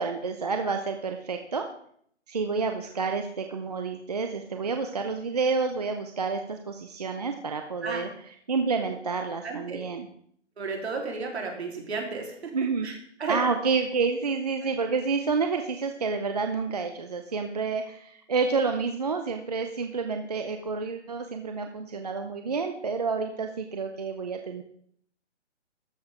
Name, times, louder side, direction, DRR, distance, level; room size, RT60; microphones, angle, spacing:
voice 1, 0.0-1.6 2.3-8.1 8.5-10.1 12.5-12.9 13.3-24.6, right 4 dB, 35° right, 5 dB, 0.7 m, -29 dB
voice 2, 9.4-9.8 10.6-12.5 12.8-13.4, right 4 dB, 60° right, 1 dB, 3.4 m, -33 dB
13.0 x 6.8 x 5.0 m, 0.66 s
hypercardioid pair, 175°, 35 cm